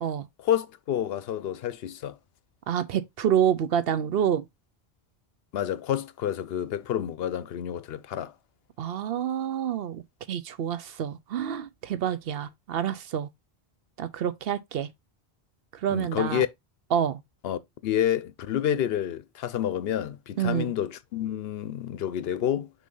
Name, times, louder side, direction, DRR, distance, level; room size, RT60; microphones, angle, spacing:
voice 1, 0.4-2.2 5.5-8.3 15.9-16.5 17.4-22.7, left 10 dB, 75° left, 0.9 m, -29 dB
voice 2, 2.7-4.4 8.8-10.0 10.3-13.3 14.0-14.9 15.8-16.4 16.9-17.2 20.4-20.7, right 9 dB, 70° right, 0.8 m, -27 dB
6.2 x 2.8 x 5.4 m
omnidirectional pair, 1.0 m